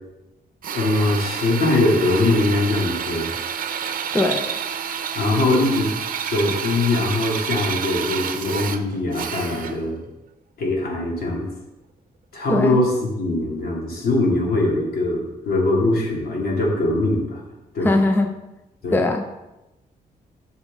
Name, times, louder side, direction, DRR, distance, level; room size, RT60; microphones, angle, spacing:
Drill, 0.6-9.9, right 7 dB, 65° right, 0.7 m, -29 dB
voice 1, 0.7-3.3 5.1-5.9 6.2-10.0 10.6-11.5 12.3-17.4 17.7-17.9 18.8-19.0, left 2 dB, 85° left, -2 dB, 2.5 m, -21 dB
voice 2, 4.1-4.4 12.5-12.8 17.8-18.3 18.9-19.2, left 2 dB, 15° left, 5 dB, 0.6 m, -20 dB
11.5 x 6.3 x 3.7 m, 0.97 s
wide cardioid pair, 150°, 15 cm